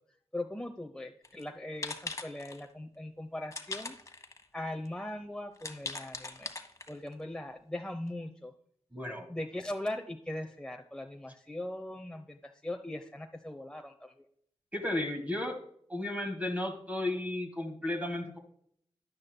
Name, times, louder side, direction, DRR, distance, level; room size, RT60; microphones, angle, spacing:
voice 1, 0.3-3.9 4.5-6.5 6.9-8.5 9.3-14.1, left 1 dB, 10° left, 3 dB, 0.8 m, -40 dB
sound 1, 1.2-1.4 1.8-2.6 3.5-4.4 4.8-4.9 5.6-7.1, left 3 dB, 30° left, 1.3 m, -41 dB
voice 2, 8.9-9.3 14.7-15.6 15.9-18.4, left 1 dB, 15° right, 3 dB, 1.7 m, -34 dB
11.0 x 9.6 x 2.2 m, 0.67 s
cardioid pair, 50°, 11 cm